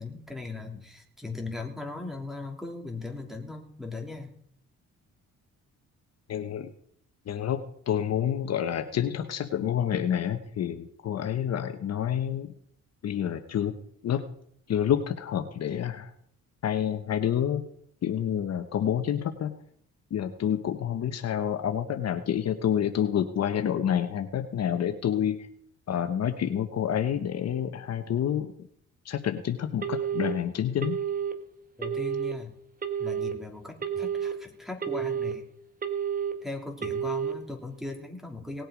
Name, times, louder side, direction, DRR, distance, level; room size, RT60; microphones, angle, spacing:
voice 1, 0.0-4.3 31.8-32.5 33.0-35.4 36.4-38.6, left 3 dB, ahead, 3 dB, 3.0 m, -38 dB
voice 2, 6.3-6.7 7.3-7.6 7.9-12.5 13.0-13.7 14.0-14.2 14.7-16.1 16.6-17.6 18.0-19.5 20.1-25.4 25.9-28.5 29.1-31.0, left 9 dB, 55° left, 7 dB, 1.1 m, -28 dB
Telephone, 29.8-30.3 30.8-31.3 31.8-32.3 32.8-33.3 33.8-34.3 34.8-35.3 35.8-36.3 36.8-37.3, right 8 dB, 25° right, 1.6 m, -30 dB
19.0 x 7.8 x 5.1 m, 0.66 s
cardioid pair, 90°, 30 cm